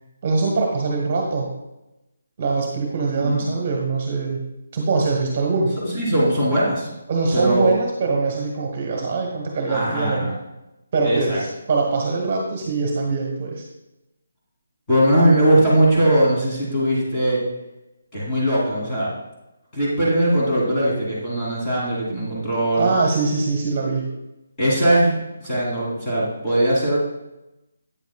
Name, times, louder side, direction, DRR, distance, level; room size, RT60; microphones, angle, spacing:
voice 1, 0.2-1.5 2.4-4.5 4.7-5.8 7.1-10.3 10.9-13.6 22.8-24.1, right 4 dB, 35° right, 1 dB, 1.2 m, -23 dB
voice 2, 5.9-6.9 7.3-7.7 9.7-10.3 11.0-11.4 14.9-17.4 18.1-19.1 19.7-22.9 24.6-25.1 25.4-27.0, right 1 dB, 15° left, -8 dB, 2.8 m, -20 dB
8.8 x 7.2 x 2.3 m, 0.95 s
hypercardioid pair, 170°, 0 cm